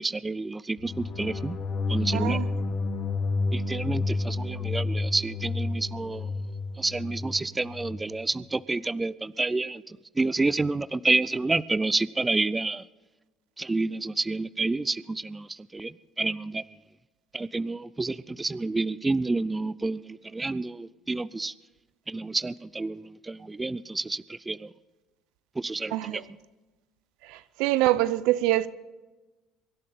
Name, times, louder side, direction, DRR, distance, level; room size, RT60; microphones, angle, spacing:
voice 1, 0.0-1.6 1.9-2.4 3.5-6.3 6.8-12.9 13.6-16.6 17.3-21.5 22.1-24.7 25.6-26.2, right 3 dB, 15° right, 0.4 m, -29 dB
sound 1, 0.8-8.0, left 3 dB, 45° left, 1.8 m, -30 dB
voice 2, 2.1-2.4 25.9-26.2 27.3-28.7, right 16 dB, 80° right, 0.6 m, -25 dB
24.0 x 11.0 x 4.3 m
supercardioid pair, 100°, 0 cm